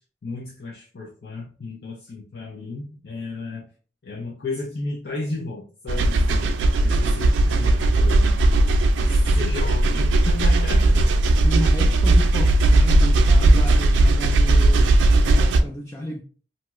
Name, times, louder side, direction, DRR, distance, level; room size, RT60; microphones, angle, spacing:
voice 1, 0.2-3.6 4.0-6.5 6.8-11.1, left 3 dB, 60° left, 0.6 m, -34 dB
sound 1, 5.9-15.6, right 2 dB, 80° right, 0.4 m, -17 dB
voice 2, 11.4-16.2, left 1 dB, 15° left, 0.3 m, -32 dB
2.7 x 2.3 x 2.9 m
head